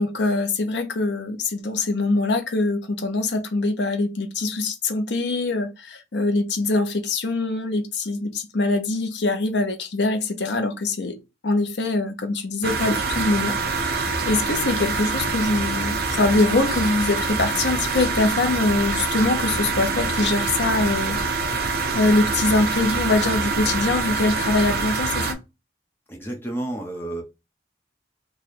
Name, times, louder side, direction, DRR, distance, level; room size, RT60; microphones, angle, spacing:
voice 1, 0.0-11.2 11.4-13.5 13.8-21.2 21.4-25.4, left 2 dB, 75° left, 0.7 m, -23 dB
sound 1, 12.6-25.3, right 4 dB, 55° right, 0.6 m, -25 dB
voice 2, 26.1-27.2, right 1 dB, 15° left, 0.9 m, -30 dB
3.2 x 2.3 x 4.1 m
head